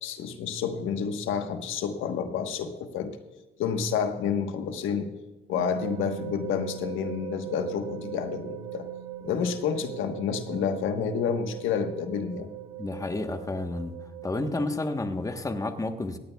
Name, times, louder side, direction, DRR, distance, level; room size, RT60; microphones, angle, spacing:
voice 1, 0.0-3.1 3.6-5.1 5.5-8.9 9.2-12.5, left 7 dB, 85° left, 7 dB, 1.2 m, -29 dB
sound 1, 5.5-14.7, right 11 dB, 85° right, 1.8 m, -40 dB
voice 2, 12.8-13.9 14.2-16.2, left 2 dB, 15° left, 7 dB, 1.1 m, -30 dB
18.5 x 15.0 x 2.3 m, 1.2 s
cardioid pair, 90°, 20 cm